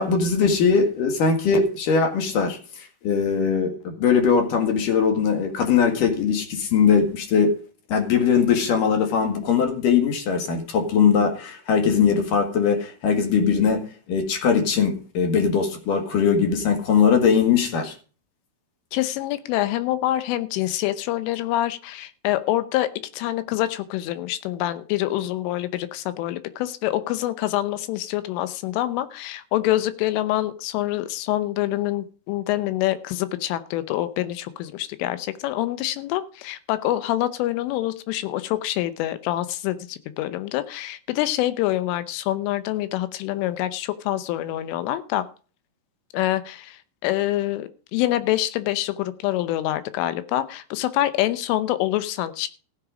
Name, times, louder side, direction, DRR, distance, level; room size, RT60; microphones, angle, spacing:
voice 1, 0.0-2.6 3.0-7.5 7.9-13.8 14.1-17.9, left 6 dB, 55° left, 2.8 m, -20 dB
voice 2, 18.9-45.2 46.1-52.5, left 14 dB, 80° left, 3.3 m, -26 dB
15.5 x 7.8 x 5.1 m
omnidirectional pair, 5.7 m